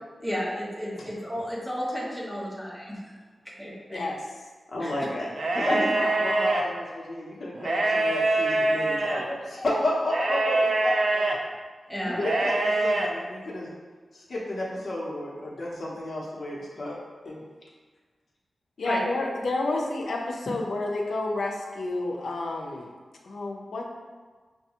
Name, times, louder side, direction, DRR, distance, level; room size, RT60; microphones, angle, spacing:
voice 1, 0.2-3.0 3.6-4.1 4.8-4.9 5.6-5.8 11.9-12.2 18.8-19.0, equal, ahead, -7 dB, 1.0 m, -32 dB
voice 2, 4.7-5.3 5.5-11.3 12.0-13.7 14.1-17.0 17.2-17.4, left 1 dB, 55° left, -6 dB, 0.8 m, -31 dB
sound 1, 5.3-6.6 7.6-9.3 10.1-11.4 12.2-13.1, right 2 dB, 60° right, 0.4 m, -24 dB
voice 3, 18.8-22.9 23.2-23.9, left 2 dB, 85° left, 0 dB, 0.5 m, -30 dB
5.9 x 2.2 x 2.9 m, 1.4 s
wide cardioid pair, 110°, 0 cm